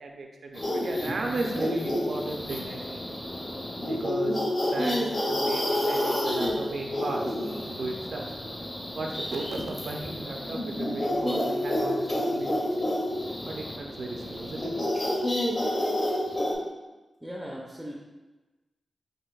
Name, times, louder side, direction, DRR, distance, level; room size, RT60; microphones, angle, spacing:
voice 1, 0.0-3.0 3.9-7.4 7.7-8.3 8.9-12.9 13.4-14.7, right 2 dB, 75° right, 1 dB, 0.5 m, -35 dB
sound 1, 0.5-16.5, left 1 dB, 35° left, 0.7 m, -29 dB
voice 2, 17.2-17.9, equal, 10° right, -3 dB, 0.4 m, -38 dB
6.0 x 2.5 x 2.3 m, 1.2 s
wide cardioid pair, 145°, 0 cm